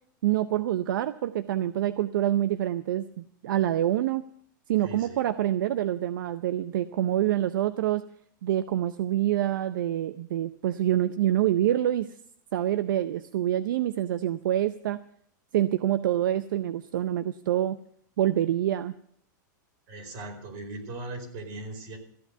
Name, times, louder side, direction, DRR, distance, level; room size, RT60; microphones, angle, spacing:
voice 1, 0.2-4.2 4.7-8.0 8.4-12.1 12.5-15.0 15.5-17.8 18.2-18.9, right 12 dB, 80° right, 13 dB, 0.6 m, -26 dB
voice 2, 4.8-5.2 19.9-22.0, right 2 dB, 55° right, 3 dB, 4.7 m, -39 dB
14.5 x 8.2 x 8.0 m, 0.65 s
supercardioid pair, 130°, 11 cm